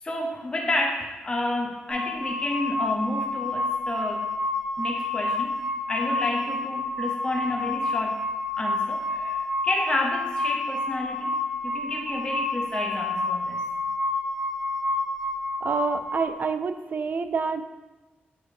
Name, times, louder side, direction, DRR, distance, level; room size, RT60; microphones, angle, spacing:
voice 1, 0.0-4.3 4.8-5.5 5.9-8.2 8.5-13.7, left 1 dB, 25° left, 0 dB, 0.6 m, -30 dB
sound 1, 1.9-16.4, left 2 dB, 5° right, 1.2 m, -29 dB
voice 2, 15.6-17.6, right 5 dB, 50° right, 9 dB, 0.4 m, -27 dB
8.7 x 3.5 x 3.2 m, 1.2 s
wide cardioid pair, 115°, 4 cm